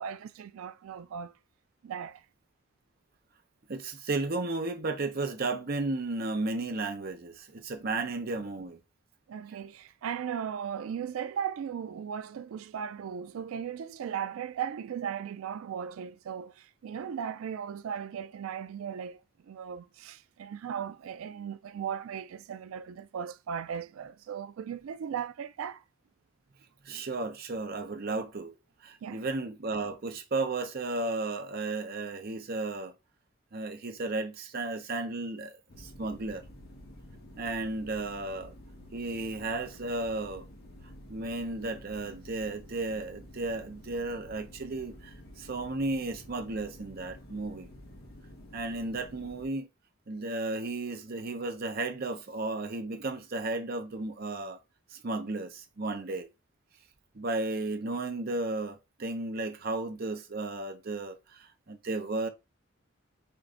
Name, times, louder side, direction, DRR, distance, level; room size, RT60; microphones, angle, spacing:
voice 1, 0.0-1.3 1.8-2.2 9.3-25.8 29.0-29.3, right 8 dB, 85° right, 0.3 m, -37 dB
voice 2, 3.7-8.8 26.8-28.5 28.8-32.9 33.5-36.4 37.4-38.5 38.9-40.5 41.1-47.7 48.5-49.7 50.1-54.6 54.9-56.3 57.1-62.3, right 2 dB, 50° right, 0.7 m, -34 dB
sound 1, 35.7-49.5, left 1 dB, 50° left, 1.2 m, -50 dB
4.5 x 2.5 x 3.7 m
head